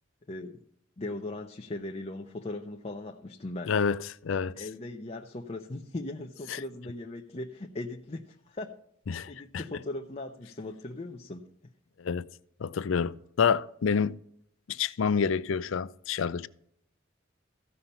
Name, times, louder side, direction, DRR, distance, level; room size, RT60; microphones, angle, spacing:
voice 1, 0.3-0.6 1.0-3.7 4.5-8.7 9.3-11.4, left 2 dB, 30° left, 0.7 m, -38 dB
voice 2, 3.7-4.7 6.5-6.6 9.1-9.6 12.0-12.3 12.6-14.2 14.7-16.5, left 6 dB, 70° left, 0.4 m, -28 dB
15.0 x 5.7 x 5.5 m
head